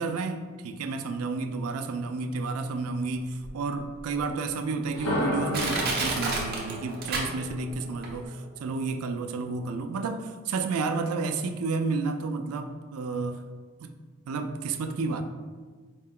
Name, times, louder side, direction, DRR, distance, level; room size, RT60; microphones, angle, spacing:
voice 1, 0.0-13.4 13.8-13.9 14.3-15.2, right 3 dB, 90° right, 7 dB, 0.4 m, -31 dB
Crushing, 3.4-3.5 4.2-4.3 4.9-5.0 5.5-7.7 8.0-8.1, right 3 dB, 45° right, 0.6 m, -29 dB
sound 1, 4.8-8.8, equal, 70° left, 0.9 m, -34 dB
4.6 x 2.2 x 3.6 m, 1.5 s
head